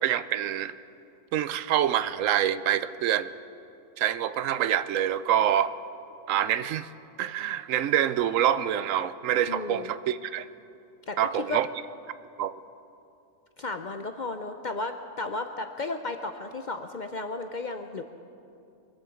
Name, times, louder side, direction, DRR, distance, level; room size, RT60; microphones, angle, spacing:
voice 1, 0.0-0.7 1.3-3.3 4.0-5.7 6.3-6.9 7.2-10.5 11.2-11.7 12.4-12.5, right 10 dB, 75° right, 14 dB, 0.9 m, -26 dB
voice 2, 9.5-9.9 11.1-11.6 13.6-18.0, left 3 dB, 50° left, 7 dB, 0.6 m, -34 dB
23.0 x 8.5 x 7.0 m, 2.6 s
omnidirectional pair, 1.4 m